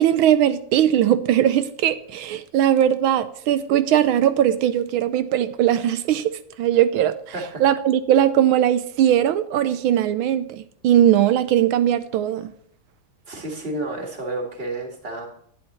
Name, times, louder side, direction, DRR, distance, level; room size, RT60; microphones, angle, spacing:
voice 1, 0.0-6.3 6.6-7.2 7.6-12.5, right 11 dB, 80° right, 1.4 m, -19 dB
voice 2, 13.3-15.3, right 2 dB, 30° right, 2.1 m, -30 dB
10.5 x 9.9 x 3.1 m
omnidirectional pair, 2.3 m